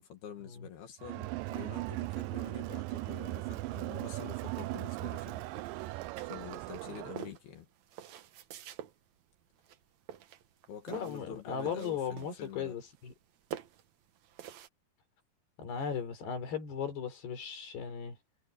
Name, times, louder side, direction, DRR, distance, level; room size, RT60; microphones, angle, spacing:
voice 1, 0.0-7.7 10.7-12.8, left 8 dB, 70° left, 4.0 m, -47 dB
Crowd, 1.0-7.3, right 19 dB, 85° right, 1.9 m, -38 dB
sound 1, 5.5-6.7 7.2-8.9 9.6-9.8 10.1-11.3 11.6-12.5 12.8-13.3 13.5-14.7, right 10 dB, 65° right, 1.9 m, -46 dB
voice 2, 10.9-13.1 15.6-18.2, left 7 dB, 90° left, 6.2 m, -37 dB
omnidirectional pair, 4.6 m